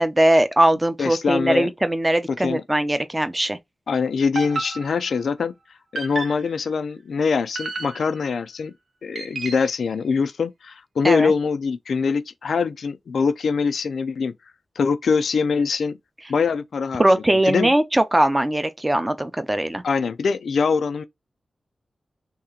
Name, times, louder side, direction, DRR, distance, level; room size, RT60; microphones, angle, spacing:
voice 1, 0.0-3.6 11.0-11.3 17.0-19.8, right 1 dB, 15° right, 0.5 m, -20 dB
voice 2, 1.0-1.7 2.4-2.6 3.9-5.5 5.9-8.7 9.0-14.3 14.8-16.0 16.3-17.7 19.8-21.0, left 5 dB, 90° left, 0.3 m, -23 dB
sound 1, 4.4-5.3 6.0-6.6 7.6-8.4 9.2-9.8, right 3 dB, 75° right, 0.8 m, -32 dB
3.2 x 2.9 x 3.6 m
wide cardioid pair, 120°, 0 cm